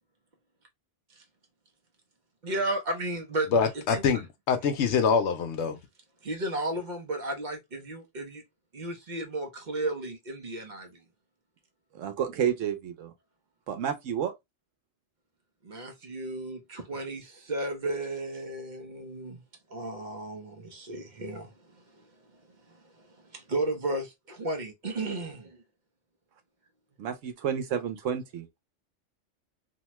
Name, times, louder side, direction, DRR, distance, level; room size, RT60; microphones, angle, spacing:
voice 1, 2.4-4.0 6.2-8.4 8.7-11.0 15.6-19.4 19.7-21.5 23.3-25.6, right 2 dB, 45° right, 0.7 m, -34 dB
voice 2, 3.5-5.8, left 6 dB, 70° left, 0.9 m, -25 dB
voice 3, 12.0-13.1 13.7-14.3 27.0-28.5, right 8 dB, 85° right, 1.1 m, -30 dB
2.7 x 2.2 x 2.9 m
omnidirectional pair, 1.3 m